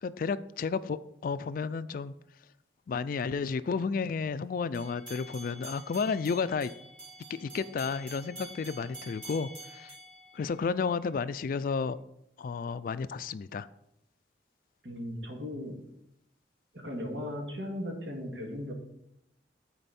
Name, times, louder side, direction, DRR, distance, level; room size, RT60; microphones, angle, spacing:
voice 1, 0.0-2.1 2.9-6.7 7.3-9.9 10.3-12.0 12.4-13.7, left 5 dB, 50° left, 0.3 m, -32 dB
sound 1, 4.7-11.0, right 2 dB, 45° right, 3.5 m, -48 dB
voice 2, 14.8-15.8 16.7-18.7, left 1 dB, 75° right, 2.0 m, -37 dB
11.0 x 4.5 x 4.2 m
head